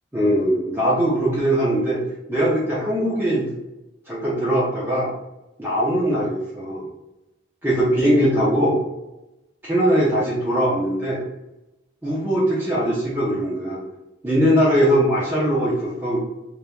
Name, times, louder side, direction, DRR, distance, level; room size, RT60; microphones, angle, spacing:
voice 1, 0.1-2.0 2.3-3.5 4.1-5.1 5.6-6.8 7.6-8.8 9.6-11.2 12.0-13.8 14.2-16.2, equal, 10° right, -8 dB, 0.5 m, -20 dB
3.2 x 2.1 x 2.3 m, 0.96 s
head